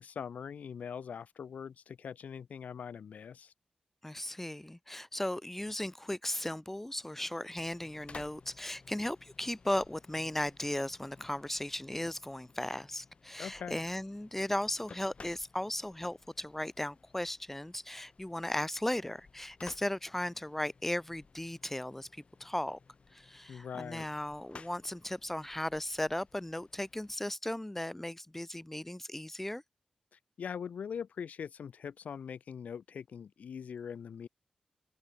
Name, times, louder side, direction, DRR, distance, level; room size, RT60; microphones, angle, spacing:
voice 1, 0.0-3.5 13.4-13.8 23.5-24.1 30.1-34.3, left 7 dB, 90° left, 1.0 m, -42 dB
voice 2, 4.0-22.8 23.1-29.6, left 1 dB, 10° left, 1.6 m, -36 dB
sound 1, 7.6-27.2, left 4 dB, 50° left, 4.5 m, -57 dB
open air
wide cardioid pair, 95°, 2 cm